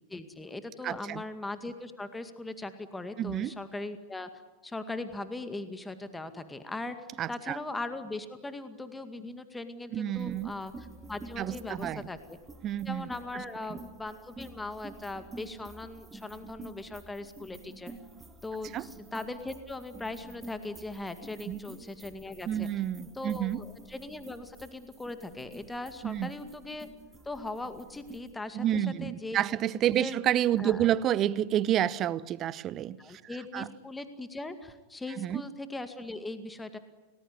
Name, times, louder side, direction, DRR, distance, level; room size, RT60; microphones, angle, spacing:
voice 1, 0.1-4.3 4.6-7.0 7.3-12.4 12.9-17.9 18.4-22.7 23.1-26.9 27.2-29.4 29.9-30.2 30.6-31.0 33.0-36.8, left 2 dB, 10° left, 2.1 m, -39 dB
voice 2, 0.8-1.2 3.2-3.5 7.2-7.6 9.9-10.5 11.4-12.1 12.6-13.1 13.3-13.4 13.7-13.8 18.7-18.9 21.5-21.6 22.5-23.6 26.0-26.3 28.5-33.2 33.5-33.7 35.2-35.4, right 11 dB, 30° right, 0.9 m, -29 dB
sound 1, 10.1-28.3, right 2 dB, 15° right, 2.2 m, -49 dB
30.0 x 19.5 x 9.8 m
figure-of-eight pair, 90°, 0 cm